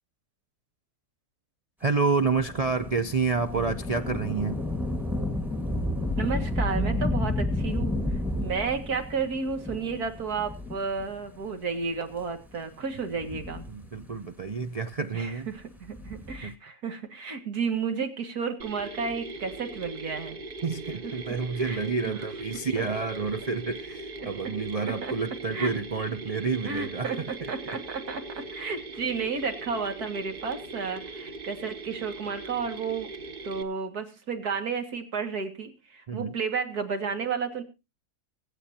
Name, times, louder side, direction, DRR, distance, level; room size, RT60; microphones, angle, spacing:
voice 1, 1.8-4.6 13.7-15.5 16.4-16.5 20.6-27.5 36.1-36.3, right 4 dB, 65° right, 0.3 m, -29 dB
Thunder / Rain, 2.2-11.2 11.9-12.0 13.0-14.3 15.8-16.5, left 1 dB, ahead, 1.5 m, -31 dB
voice 2, 6.2-7.9 8.4-13.6 15.1-20.4 21.3-21.4 21.6-21.8 22.1-22.2 25.0-25.1 25.5-25.7 26.7-27.2 27.5-33.1 33.4-37.6, right 5 dB, 80° right, 2.5 m, -32 dB
Mechanisms, 18.6-33.6, right 3 dB, 40° right, 1.2 m, -40 dB
24.5 x 8.3 x 2.8 m
omnidirectional pair, 1.6 m